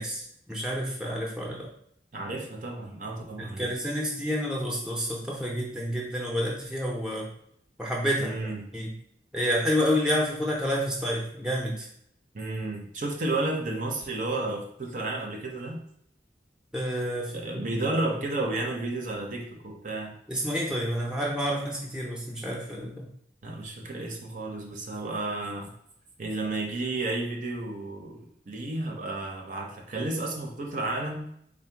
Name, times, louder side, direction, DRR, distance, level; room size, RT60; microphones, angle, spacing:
voice 1, 0.0-1.7 3.4-7.3 7.8-8.4 8.7-8.9 9.3-11.9 16.7-17.7 20.3-23.1, equal, 5° right, -2 dB, 0.5 m, -29 dB
voice 2, 2.1-3.7 8.2-8.7 12.3-15.8 17.3-20.1 23.4-25.7 26.2-31.2, right 2 dB, 45° right, 1 dB, 0.6 m, -32 dB
3.7 x 2.1 x 4.4 m, 0.70 s
head